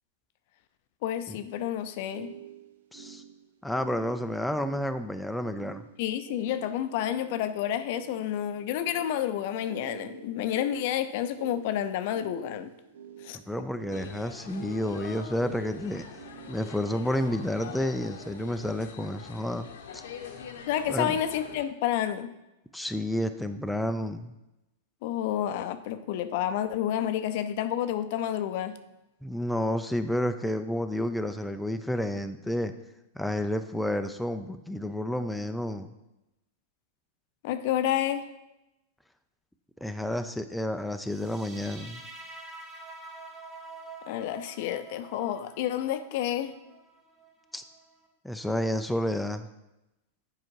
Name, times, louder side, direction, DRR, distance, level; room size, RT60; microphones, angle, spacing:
voice 1, 1.0-2.3 6.0-12.7 13.2-13.4 20.7-22.3 25.0-28.8 37.4-38.2 44.1-46.5, left 11 dB, 60° left, 11 dB, 0.5 m, -30 dB
shortness of breath, 1.5-16.9, right 8 dB, 80° right, 0.7 m, -47 dB
voice 2, 2.9-3.2 3.6-5.8 13.3-16.0 16.5-19.7 19.9-20.0 20.9-21.1 22.7-24.3 29.2-32.7 33.2-35.9 39.8-42.0 47.5-47.6 48.2-49.5, left 1 dB, ahead, 7 dB, 0.4 m, -30 dB
sound 1, 13.9-21.6, left 6 dB, 75° left, 0.9 m, -44 dB
sound 2, 41.0-48.1, right 3 dB, 20° right, 2.5 m, -47 dB
7.6 x 4.8 x 4.6 m, 0.93 s
hypercardioid pair, 115°, 0 cm